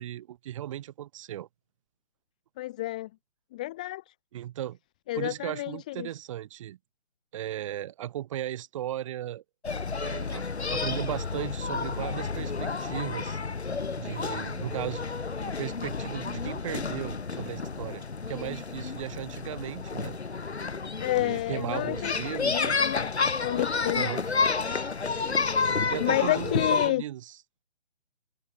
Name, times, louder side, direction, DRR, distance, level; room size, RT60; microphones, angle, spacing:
voice 1, 0.0-1.5 4.3-4.8 5.1-6.8 7.3-9.4 10.0-13.4 14.0-15.1 15.5-20.2 21.2-22.8 23.9-24.3 25.9-27.4, right 12 dB, 25° right, 5.4 m, -36 dB
voice 2, 2.6-3.1 3.5-4.1 5.1-6.1 21.0-23.1 23.3-24.1 26.0-27.0, left 17 dB, 5° left, 0.8 m, -30 dB
sound 1, 9.6-26.9, left 4 dB, 65° left, 5.2 m, -30 dB
figure-of-eight pair, 155°, 36 cm